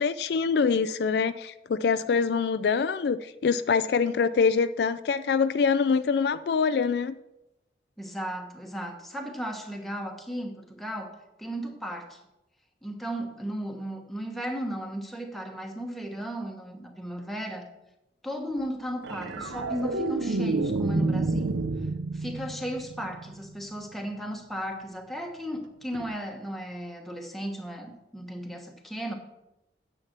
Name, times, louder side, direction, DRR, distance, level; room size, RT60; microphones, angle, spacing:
voice 1, 0.0-7.1, left 5 dB, 60° left, 0.3 m, -25 dB
voice 2, 8.0-12.2 12.8-17.6 18.2-21.5 22.1-29.1, equal, ahead, 1.2 m, -35 dB
sound 1, 19.0-23.5 25.9-26.1, right 2 dB, 90° right, 0.7 m, -29 dB
9.8 x 7.1 x 5.9 m
head